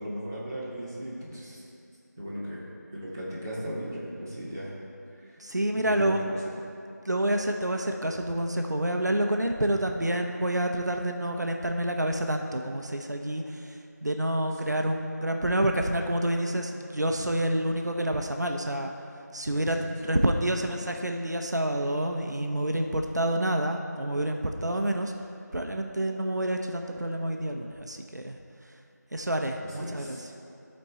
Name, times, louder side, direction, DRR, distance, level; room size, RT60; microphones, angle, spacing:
voice 1, 0.0-1.6 2.2-2.6 2.9-4.7 5.3-5.4 5.7-6.3 14.6-14.7 19.5-19.9 29.8-30.2, equal, 10° right, -11 dB, 0.9 m, -37 dB
voice 2, 5.4-6.2 7.0-18.9 19.3-25.1 25.5-28.4 28.6-28.7 29.1-30.3, right 1 dB, 70° right, 4 dB, 0.7 m, -28 dB
13.0 x 4.4 x 4.1 m, 2.6 s
figure-of-eight pair, 175°, 10 cm